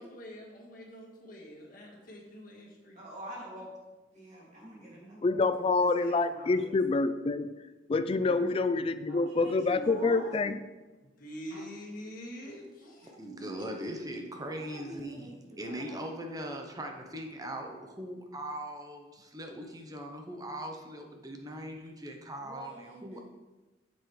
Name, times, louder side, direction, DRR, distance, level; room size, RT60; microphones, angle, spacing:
voice 1, 0.0-3.0 4.8-4.9 11.0-13.1 13.6-13.9, equal, 50° left, -2 dB, 1.7 m, -46 dB
voice 2, 2.9-3.7 4.1-6.6 8.2-8.5 9.1-10.3 11.5-11.6 12.8-13.8 14.5-16.2 22.4-23.2, equal, 40° right, -5 dB, 2.5 m, -45 dB
voice 3, 5.2-7.5 7.9-10.6, left 3 dB, 30° left, 12 dB, 0.3 m, -27 dB
voice 4, 13.2-23.2, right 1 dB, 20° right, 3 dB, 0.8 m, -40 dB
7.7 x 7.1 x 3.2 m, 1.2 s
head